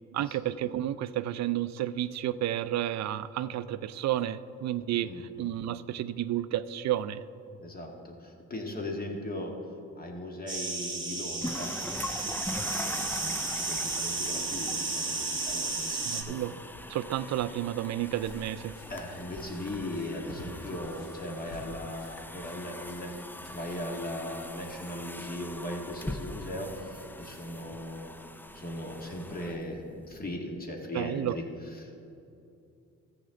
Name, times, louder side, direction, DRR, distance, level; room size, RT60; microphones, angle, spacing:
voice 1, 0.1-7.2 16.1-16.6 16.9-18.7 30.9-31.4, right 12 dB, 65° right, 14 dB, 0.5 m, -31 dB
voice 2, 5.0-5.5 7.6-9.5 9.9-11.7 12.5-16.4 18.9-23.2 23.5-28.1 28.5-31.4 31.8-32.0, left 1 dB, 30° left, 1 dB, 1.8 m, -38 dB
sound 1, 10.5-16.2, right 3 dB, 15° right, 1.8 m, -33 dB
sound 2, 11.4-30.3, left 1 dB, 5° left, 0.4 m, -42 dB
sound 3, 18.0-24.0, left 1 dB, 80° left, 1.9 m, -51 dB
14.0 x 8.0 x 3.9 m, 2.7 s
cardioid pair, 90°, 30 cm